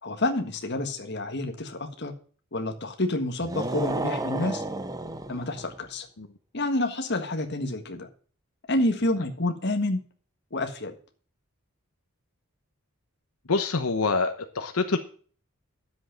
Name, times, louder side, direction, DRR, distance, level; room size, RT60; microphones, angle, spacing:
voice 1, 0.0-2.1 2.5-4.6 5.3-6.1 6.5-8.1 8.7-10.0 10.5-10.9, left 1 dB, 50° left, 5 dB, 1.6 m, -28 dB
sound 1, 3.4-5.8, right 2 dB, 15° right, 0.7 m, -32 dB
voice 2, 13.4-15.0, left 4 dB, 75° left, 6 dB, 1.1 m, -26 dB
10.5 x 7.8 x 5.8 m, 0.43 s
head